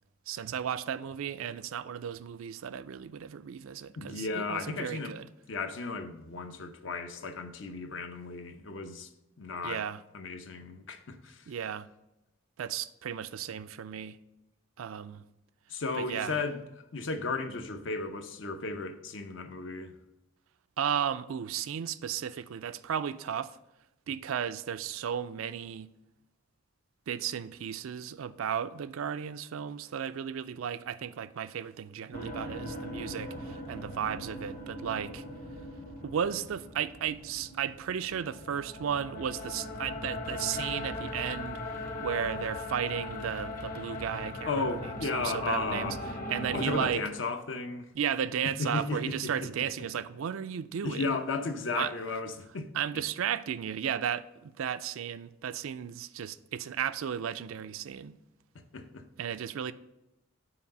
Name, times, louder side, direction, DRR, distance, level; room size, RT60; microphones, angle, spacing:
voice 1, 0.3-5.3 9.6-10.0 11.5-11.9 12.6-14.2 14.8-15.3 16.0-16.4 20.8-23.5 24.1-25.9 27.1-35.2 36.0-41.6 42.0-44.7 45.1-46.0 46.3-47.0 47.9-51.2 51.8-52.2 52.7-58.2 59.2-59.7, right 8 dB, 80° right, 0.4 m, -34 dB
voice 2, 4.0-5.1 5.5-9.1 9.4-9.8 10.1-11.4 15.7-16.6 16.9-19.9 44.5-46.0 46.5-47.9 48.4-49.5 50.8-52.7 52.9-53.0 58.7-59.0, left 3 dB, 65° left, 0.7 m, -34 dB
sound 1, 32.1-46.9, left 1 dB, 40° left, 1.1 m, -39 dB
5.9 x 4.7 x 6.6 m
head